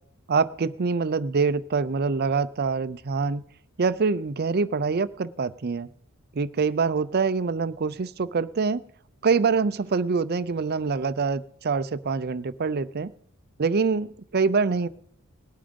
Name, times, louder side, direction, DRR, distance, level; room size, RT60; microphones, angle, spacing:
voice 1, 0.3-3.4 3.8-5.9 6.3-8.8 9.2-13.1 13.6-14.9, right 4 dB, 45° right, 15 dB, 0.5 m, -25 dB
18.5 x 8.9 x 5.2 m, 0.65 s
head